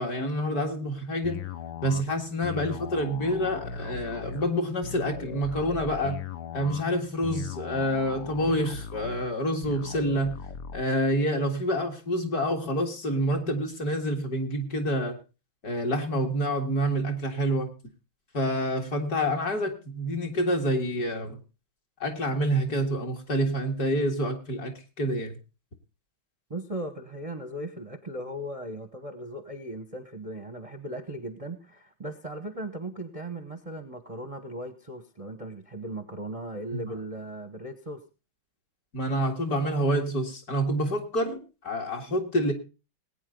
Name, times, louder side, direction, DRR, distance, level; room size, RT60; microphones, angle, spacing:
voice 1, 0.0-1.4 1.8-6.2 6.5-10.4 10.7-15.2 15.6-17.7 18.3-21.4 22.0-25.3 36.7-36.8 38.9-42.5, equal, 45° left, 2 dB, 2.4 m, -27 dB
sound 1, 1.2-10.8, left 6 dB, 60° left, 1.2 m, -38 dB
voice 2, 26.5-38.0, right 1 dB, 25° right, 9 dB, 0.8 m, -37 dB
20.0 x 9.2 x 3.9 m, 0.32 s
omnidirectional pair, 2.4 m